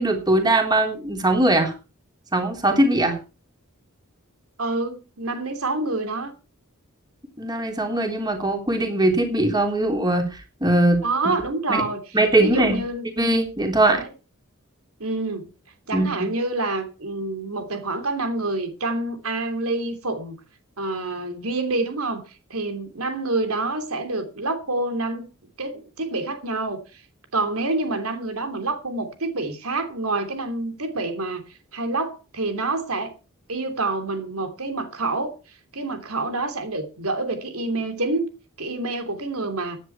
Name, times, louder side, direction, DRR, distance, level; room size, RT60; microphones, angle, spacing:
voice 1, 0.0-1.7 2.3-3.2 7.4-11.0 11.7-11.8 12.1-12.8 13.2-14.0 15.9-16.3, right 1 dB, 20° right, 3.5 m, -21 dB
voice 2, 4.6-6.3 11.0-12.0 12.4-13.1 13.9-14.1 15.0-15.5 15.9-20.3 20.8-22.2 22.5-25.3 25.6-26.8 27.3-31.4 31.7-33.1 33.5-35.3 35.7-38.3 38.6-39.8, right 2 dB, 85° right, 2.9 m, -27 dB
16.0 x 10.5 x 4.5 m
head